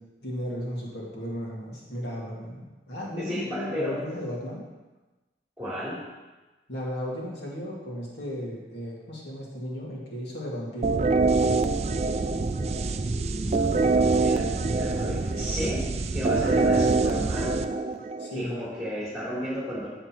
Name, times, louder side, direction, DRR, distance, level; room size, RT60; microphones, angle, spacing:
voice 1, 0.2-4.6 6.7-11.7 18.2-18.5, equal, 85° left, -4 dB, 2.3 m, -35 dB
voice 2, 3.2-4.0 5.6-6.0 13.1-17.8 18.3-19.9, equal, 5° right, -8 dB, 3.4 m, -33 dB
sound 1, 10.8-18.5, right 3 dB, 35° right, 0.4 m, -25 dB
8.5 x 7.7 x 4.5 m, 1.2 s
head